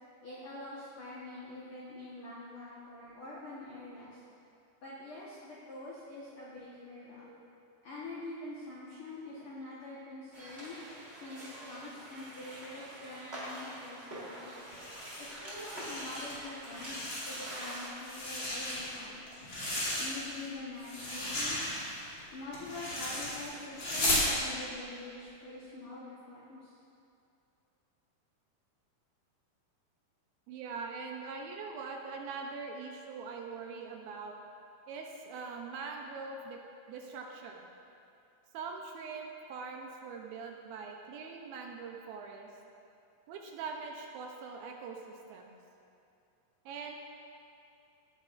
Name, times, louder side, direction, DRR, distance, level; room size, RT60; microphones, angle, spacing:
voice 1, 0.2-4.2 4.8-7.3 7.8-10.8 11.2-14.5 15.2-19.3 20.0-21.6 22.3-26.6, left 2 dB, 75° left, -7 dB, 1.2 m, -45 dB
sound 1, 10.3-17.9, right 1 dB, 55° right, 0.7 m, -45 dB
voice 2, 14.5-14.9 25.7-25.8 30.5-34.3 34.9-36.6 36.9-37.7 38.5-42.5 43.3-45.5 46.7-47.0, right 4 dB, 80° right, 1 dB, 2.4 m, -43 dB
sound 2, 14.6-16.3 16.6-17.6 18.0-20.5 20.8-24.3, left 1 dB, 35° left, 2.9 m, -35 dB
17.0 x 8.6 x 2.5 m, 2.6 s
omnidirectional pair, 4.5 m